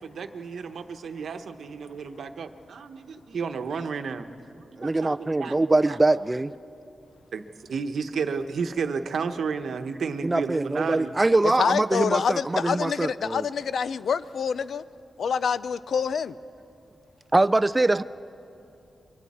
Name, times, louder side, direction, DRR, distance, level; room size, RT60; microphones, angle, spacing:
voice 1, 0.0-4.3 4.6-6.0 7.3-11.1 17.8-18.0, right 5 dB, 75° right, 8 dB, 0.9 m, -32 dB
voice 2, 4.8-6.5 10.2-13.5 17.3-18.0, right 2 dB, 20° right, 14 dB, 0.4 m, -23 dB
voice 3, 11.6-14.8 15.2-16.4, left 6 dB, 75° left, 16 dB, 0.5 m, -26 dB
27.0 x 23.5 x 4.3 m, 2.7 s
wide cardioid pair, 115°, 0 cm